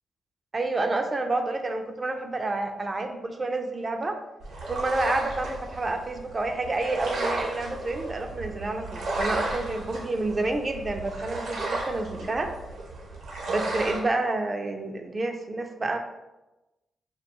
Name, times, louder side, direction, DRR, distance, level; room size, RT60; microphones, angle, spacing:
voice 1, 0.5-4.2 4.7-12.5 13.5-16.0, right 2 dB, 40° right, 5 dB, 0.3 m, -29 dB
sound 1, 4.4-14.0, right 2 dB, 80° right, 0.7 m, -34 dB
2.3 x 2.1 x 2.8 m, 1.0 s
supercardioid pair, 50°, 0 cm